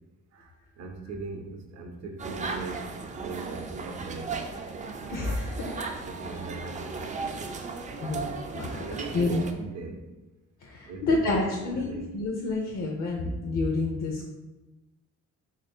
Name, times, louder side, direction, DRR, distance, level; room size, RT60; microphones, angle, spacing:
voice 1, 0.3-4.4 5.8-7.4 8.0-8.2 8.6-10.0 10.9-11.4 11.7-12.1, right 3 dB, 60° right, 2 dB, 0.7 m, -39 dB
sound 1, 2.2-9.5, right 4 dB, 25° right, 0.4 m, -36 dB
voice 2, 5.1-5.7 8.0-8.3 8.5-8.8 9.1-9.4 10.6-14.3, left 2 dB, 60° left, -1 dB, 0.6 m, -29 dB
2.9 x 2.6 x 4.2 m, 1.1 s
cardioid pair, 90°, 30 cm